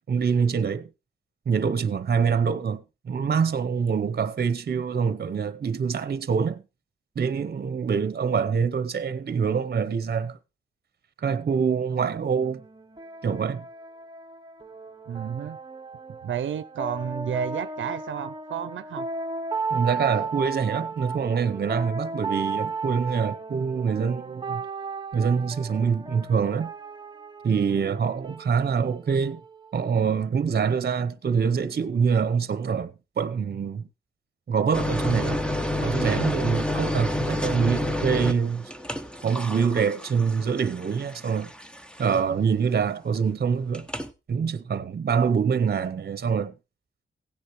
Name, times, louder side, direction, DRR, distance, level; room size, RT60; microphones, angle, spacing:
voice 1, 0.1-0.9 1.5-6.6 7.2-10.4 11.2-12.6 13.2-13.6 19.7-24.6 25.1-26.7 27.4-29.4 29.7-33.9 34.5-35.4 35.8-38.7 39.2-41.5 42.0-43.9 44.3-46.5, right 6 dB, 55° right, 0.8 m, -25 dB
sound 1, 12.4-29.9, right 4 dB, 25° right, 0.9 m, -35 dB
voice 2, 15.1-15.6 16.2-19.1, right 9 dB, 85° right, 0.5 m, -31 dB
sound 2, 34.7-42.4 43.7-44.1, left 1 dB, 5° left, 0.9 m, -29 dB
16.0 x 9.9 x 3.0 m
wide cardioid pair, 110°, 19 cm